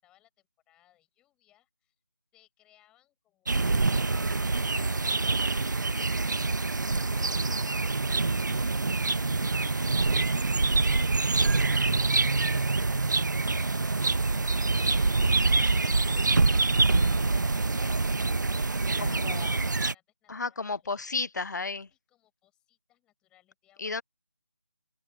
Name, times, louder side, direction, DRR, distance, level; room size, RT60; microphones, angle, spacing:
voice 1, 0.0-1.9 2.3-5.2 18.8-21.0 21.9-23.9, left 14 dB, 5° left, 6.6 m, -67 dB
sound 1, 3.5-19.9, right 3 dB, 65° right, 1.3 m, -25 dB
voice 2, 19.0-19.5 20.3-21.9 23.8-24.0, left 4 dB, 60° left, 0.6 m, -33 dB
figure-of-eight pair, 165°, 11 cm